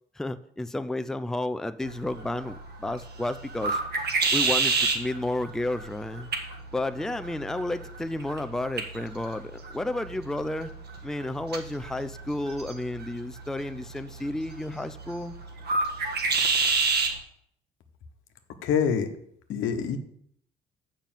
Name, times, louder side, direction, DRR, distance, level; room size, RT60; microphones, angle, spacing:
voice 1, 0.2-3.8 4.3-6.3 6.7-10.7 11.0-15.3, left 1 dB, ahead, 11 dB, 0.4 m, -32 dB
sound 1, 1.8-17.2, right 4 dB, 55° right, 1.8 m, -31 dB
voice 2, 18.6-19.1 19.5-20.0, left 7 dB, 85° left, 7 dB, 1.1 m, -25 dB
7.0 x 5.6 x 7.4 m, 0.70 s
cardioid pair, 90°, 20 cm